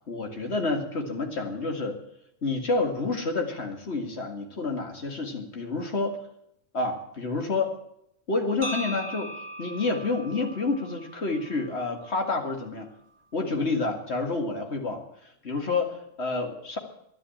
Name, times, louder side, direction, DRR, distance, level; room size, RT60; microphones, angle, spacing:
voice 1, 0.1-2.0 2.4-6.2 6.7-7.7 8.3-9.3 9.6-12.9 13.3-15.0 15.4-16.8, left 3 dB, 60° left, 4 dB, 2.3 m, -29 dB
sound 1, 8.6-12.7, equal, 25° right, 1.2 m, -39 dB
11.0 x 11.0 x 8.6 m, 0.76 s
omnidirectional pair, 1.3 m